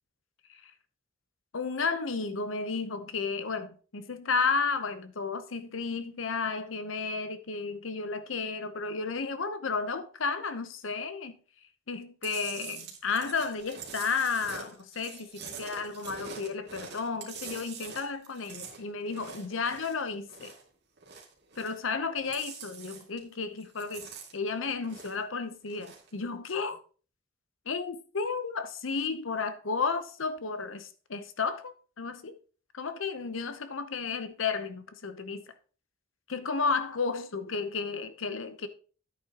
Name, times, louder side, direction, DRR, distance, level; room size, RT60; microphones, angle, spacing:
voice 1, 1.5-11.3 11.9-20.5 21.6-24.1 24.3-26.8 27.7-32.3 32.7-35.4 36.3-38.7, left 4 dB, 70° left, 0.8 m, -33 dB
Chewing mastication, 12.2-20.7 21.0-21.9 22.2-23.3 23.6-25.3 25.6-26.1, right 6 dB, 55° right, 2.3 m, -45 dB
10.5 x 8.9 x 2.9 m
head